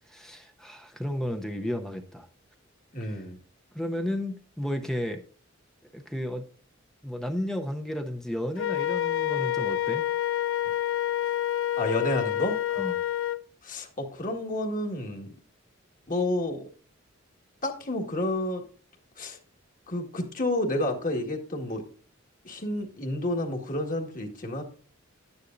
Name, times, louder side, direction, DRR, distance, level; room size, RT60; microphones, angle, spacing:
voice 1, 0.1-2.3 3.0-3.2 3.7-5.2 5.9-6.4 7.0-10.1 12.8-13.0, equal, ahead, 4 dB, 0.7 m, -33 dB
voice 2, 2.9-3.4 11.8-12.6 13.6-15.3 16.1-16.6 17.6-18.6 19.2-19.4 19.9-21.8 22.4-24.6, left 1 dB, 40° left, 3 dB, 1.8 m, -30 dB
Wind instrument woodwind instrument, 8.6-13.4, left 12 dB, 75° left, 0.6 m, -28 dB
12.0 x 9.7 x 2.6 m, 0.42 s
head